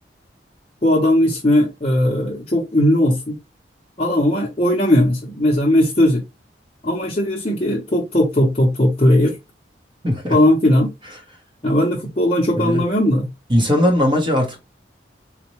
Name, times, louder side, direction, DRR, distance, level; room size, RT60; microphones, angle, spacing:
voice 1, 0.8-3.4 4.0-6.2 6.8-9.4 10.3-10.9 11.6-13.3, left 1 dB, 35° left, 0.7 m, -17 dB
voice 2, 10.0-10.4 12.6-12.8 13.5-14.6, left 1 dB, 25° right, 0.8 m, -18 dB
3.9 x 2.1 x 3.0 m
head